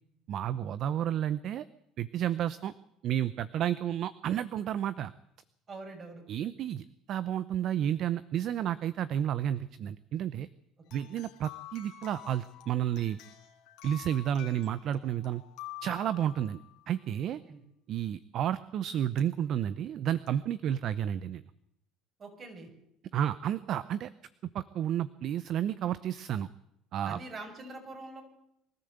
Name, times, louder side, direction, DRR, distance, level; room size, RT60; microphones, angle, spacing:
voice 1, 0.3-1.6 2.0-2.7 3.0-5.1 6.3-10.5 10.9-13.2 13.8-15.4 15.8-16.6 16.9-17.4 17.9-21.4 23.1-24.1 24.5-26.5 26.9-27.2, right 10 dB, 60° right, 16 dB, 0.7 m, -31 dB
voice 2, 5.7-6.2 10.9-11.1 17.2-17.6 22.2-22.7 27.0-28.2, right 3 dB, 40° right, 3 dB, 6.8 m, -44 dB
sound 1, 10.9-16.8 19.2-19.3 20.3-20.4, left 15 dB, 75° left, 2.6 m, -48 dB
23.5 x 13.5 x 8.1 m, 0.81 s
supercardioid pair, 85°, 0 cm